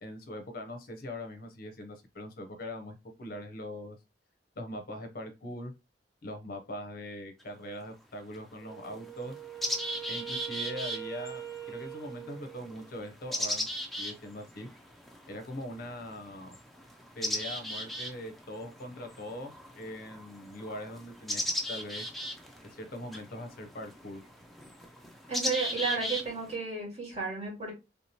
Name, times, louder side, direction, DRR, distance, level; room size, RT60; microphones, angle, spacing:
voice 1, 0.0-4.0 4.6-5.7 6.2-9.4 10.1-13.7 14.0-14.7 15.3-16.5 17.2-21.4 21.7-22.1 22.6-24.2, left 1 dB, 50° left, 0.6 m, -41 dB
sound 1, 7.4-7.5 8.3-8.4 8.8-26.5, equal, ahead, 0.4 m, -37 dB
Wind instrument woodwind instrument, 8.6-13.0, right 10 dB, 75° right, 0.9 m, -43 dB
voice 2, 25.3-27.7, right 4 dB, 35° right, 1.8 m, -33 dB
3.3 x 2.8 x 2.8 m
head